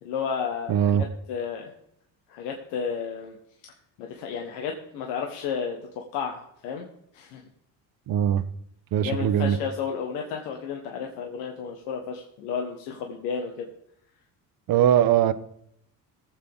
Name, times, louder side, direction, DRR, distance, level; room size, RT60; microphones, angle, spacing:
voice 1, 0.0-1.7 2.3-3.4 4.0-6.9 7.1-7.5 9.0-13.7, left 6 dB, 90° left, 2 dB, 1.4 m, -32 dB
voice 2, 0.7-1.0 8.1-8.4 8.9-9.6 14.7-15.3, right 10 dB, 60° right, 13 dB, 0.9 m, -21 dB
18.5 x 7.5 x 3.6 m, 0.73 s
cardioid pair, 100°, 40 cm